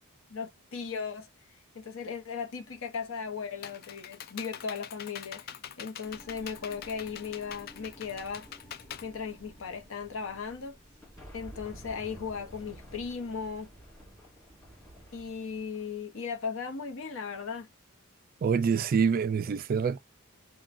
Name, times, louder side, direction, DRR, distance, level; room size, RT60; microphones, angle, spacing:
voice 1, 0.3-1.3 1.7-8.5 9.0-10.7 11.3-13.7 15.1-17.7, left 5 dB, 70° left, 0.8 m, -37 dB
Computer keyboard, 3.1-9.9, left 9 dB, 45° left, 0.3 m, -45 dB
sound 1, 6.0-14.3, equal, ahead, 0.8 m, -55 dB
sound 2, 11.0-16.0, equal, 15° left, 2.1 m, -50 dB
voice 2, 18.4-20.0, right 6 dB, 45° right, 0.3 m, -26 dB
3.7 x 2.2 x 2.5 m
head